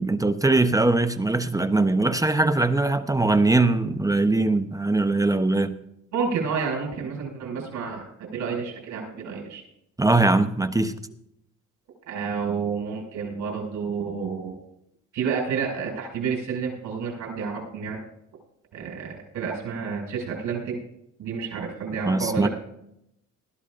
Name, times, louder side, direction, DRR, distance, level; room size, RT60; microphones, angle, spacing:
voice 1, 0.0-5.7 10.0-10.9 22.0-22.5, right 2 dB, 10° right, 10 dB, 0.8 m, -21 dB
voice 2, 6.1-9.6 12.1-14.6 15.1-18.0 18.7-20.8 21.2-22.5, right 5 dB, 80° right, -1 dB, 5.8 m, -30 dB
21.0 x 13.5 x 2.5 m, 0.79 s
cardioid pair, 90°, 30 cm